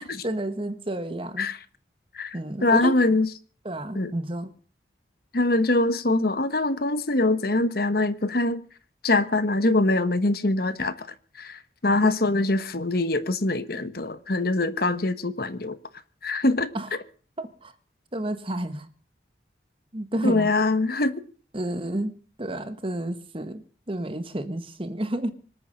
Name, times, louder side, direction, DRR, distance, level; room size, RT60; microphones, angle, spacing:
voice 1, 0.0-1.5 2.3-2.9 3.6-4.5 12.0-12.1 16.7-16.9 17.4-17.7 18.1-18.9 19.9-20.5 21.5-25.3, right 1 dB, 30° right, 1.5 m, -31 dB
voice 2, 2.6-3.3 3.9-4.1 5.3-8.6 9.0-11.1 11.4-15.8 16.2-16.7 20.2-21.2, left 2 dB, 55° left, 1.2 m, -23 dB
25.5 x 9.0 x 5.2 m
head